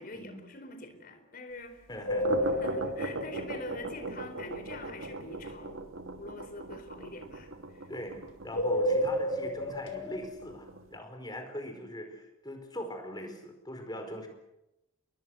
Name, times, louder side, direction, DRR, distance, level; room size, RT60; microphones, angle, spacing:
voice 1, 0.0-1.9 2.3-8.2 8.5-9.0, left 2 dB, 45° left, 7 dB, 4.4 m, -46 dB
voice 2, 1.9-2.3 7.9-14.3, equal, 20° left, 5 dB, 4.6 m, -41 dB
sound 1, 1.9-11.0, right 2 dB, 90° right, 2.2 m, -40 dB
sound 2, 2.0-4.5 8.5-10.2, equal, 65° left, 4.9 m, -31 dB
29.5 x 22.0 x 6.4 m, 0.92 s
head